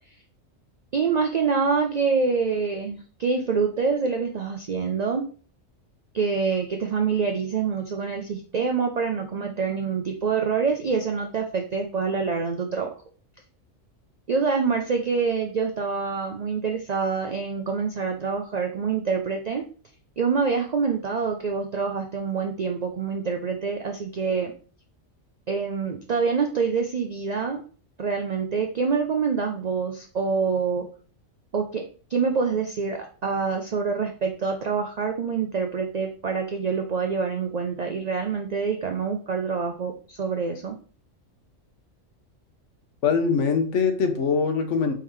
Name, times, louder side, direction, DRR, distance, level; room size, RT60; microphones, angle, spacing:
voice 1, 0.9-5.2 6.1-12.9 14.3-19.6 20.2-24.5 25.5-27.6 28.0-30.9 31.5-31.8 32.1-40.8, right 5 dB, 85° right, 3 dB, 0.3 m, -26 dB
voice 2, 43.0-44.9, left 5 dB, 65° left, 7 dB, 1.1 m, -22 dB
4.6 x 3.7 x 3.1 m, 0.41 s
omnidirectional pair, 1.4 m